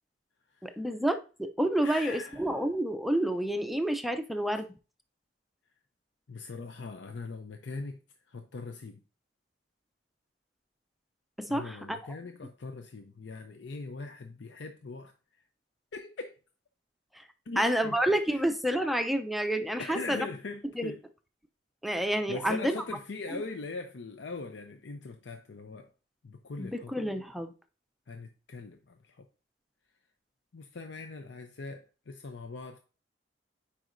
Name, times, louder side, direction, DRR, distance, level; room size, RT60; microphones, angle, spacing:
voice 1, 0.6-4.7 11.4-12.2 17.1-17.2 17.6-20.3 20.7-20.9 21.8-23.0 26.6-27.5, right 1 dB, ahead, 0.4 m, -29 dB
voice 2, 1.8-2.5 6.3-8.0 8.3-9.0 11.5-15.1 15.9-16.3 17.5-18.0 19.8-21.0 21.8-25.9 26.2-26.9 28.1-29.3 30.5-32.8, left 3 dB, 70° left, 0.5 m, -41 dB
9.2 x 4.9 x 2.6 m
head